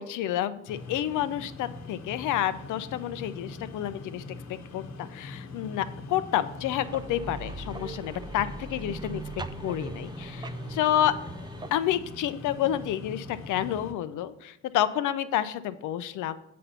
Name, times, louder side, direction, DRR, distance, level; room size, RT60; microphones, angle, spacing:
voice 1, 0.0-4.2 4.7-9.2 9.6-11.2 11.7-16.4, left 11 dB, 80° left, 13 dB, 0.6 m, -29 dB
sound 1, 0.7-13.9, left 3 dB, 65° left, 1.1 m, -42 dB
sound 2, 6.7-11.7, right 3 dB, 15° right, 0.4 m, -40 dB
7.5 x 4.2 x 6.8 m, 0.79 s
cardioid pair, 90°, 30 cm